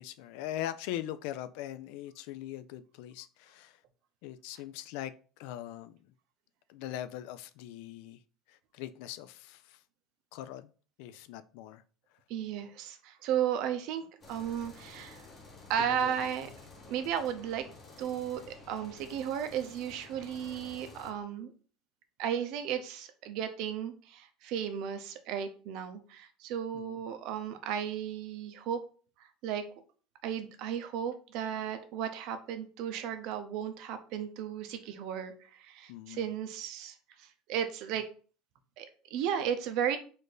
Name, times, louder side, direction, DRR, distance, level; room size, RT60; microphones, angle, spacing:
voice 1, 0.0-3.8 4.2-5.9 6.7-8.2 8.5-9.8 10.3-10.7 11.0-11.8 15.8-16.1 26.7-27.0 35.9-36.3, left 12 dB, 65° left, 0.3 m, -41 dB
voice 2, 12.3-15.3 15.7-16.5 16.9-17.7 18.0-21.5 22.2-28.8 29.4-29.6 30.2-38.1 38.8-40.0, right 9 dB, 50° right, 0.6 m, -34 dB
sound 1, 14.2-21.1, left 3 dB, 20° left, 1.0 m, -52 dB
4.2 x 2.6 x 4.8 m
cardioid pair, 175°, 0 cm